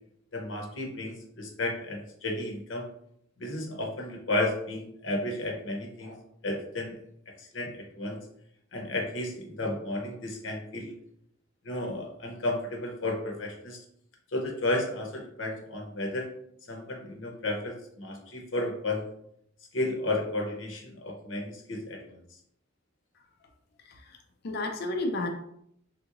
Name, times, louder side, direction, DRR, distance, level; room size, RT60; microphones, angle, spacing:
voice 1, 0.3-2.9 3.4-6.2 6.4-6.9 7.4-8.2 8.7-10.9 11.6-13.8 14.3-16.3 16.7-19.0 19.7-22.2, left 1 dB, 70° left, 1 dB, 0.8 m, -33 dB
voice 2, 23.1-23.5 23.8-25.3, left 2 dB, 55° left, 4 dB, 0.4 m, -33 dB
3.4 x 2.9 x 2.5 m, 0.71 s
head